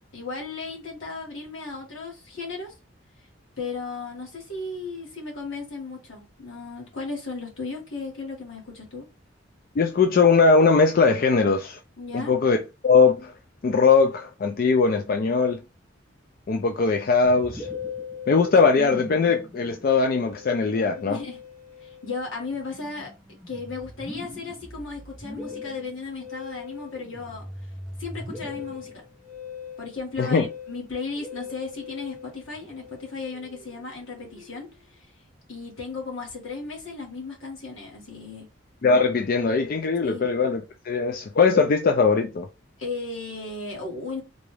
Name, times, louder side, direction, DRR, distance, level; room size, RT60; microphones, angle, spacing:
voice 1, 0.1-2.7 3.6-9.1 12.0-12.3 21.1-21.4 21.8-23.1 23.5-27.5 28.0-28.9 29.8-35.1 35.5-38.5 40.0-40.3 42.8-44.2, left 4 dB, 80° left, 1.6 m, -35 dB
voice 2, 9.8-11.8 12.1-12.6 12.8-13.3 13.6-15.6 16.5-17.7 18.3-21.2 30.2-30.5 38.8-42.5, left 4 dB, 45° left, 0.3 m, -20 dB
Musical instrument, 17.2-34.8, left 4 dB, ahead, 0.8 m, -40 dB
3.8 x 2.3 x 3.1 m
head